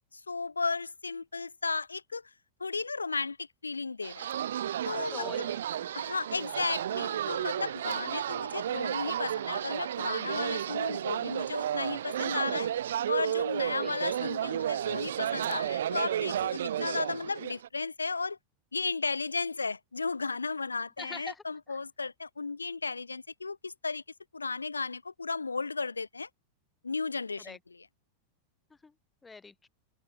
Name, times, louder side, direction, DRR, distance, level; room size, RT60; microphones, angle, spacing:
voice 1, 0.1-2.3 2.6-4.3 4.8-5.5 5.9-12.7 13.1-18.4 18.7-24.0 24.3-26.3 26.8-27.9, left 4 dB, 80° left, 0.8 m, -34 dB
sound 1, 4.0-17.7, right 10 dB, 60° right, 0.5 m, -32 dB
voice 2, 5.1-5.9 7.8-8.0 13.8-14.0 21.0-21.4 21.7-21.8 27.4-27.6 28.8-28.9 29.2-29.7, left 4 dB, 10° left, 1.0 m, -44 dB
figure-of-eight pair, 90°, 0 cm